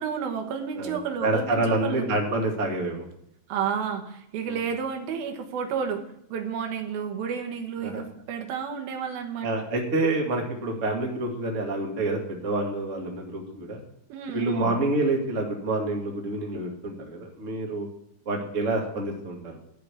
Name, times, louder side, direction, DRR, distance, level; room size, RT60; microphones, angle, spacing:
voice 1, 0.0-2.1 3.5-9.5 14.1-14.8, right 7 dB, 85° right, 5 dB, 3.3 m, -31 dB
voice 2, 0.8-3.0 4.5-4.6 7.8-8.0 9.4-13.8 14.3-17.9 18.3-19.4, right 2 dB, 25° right, 1 dB, 2.1 m, -27 dB
13.5 x 5.1 x 8.3 m, 0.75 s
omnidirectional pair, 4.1 m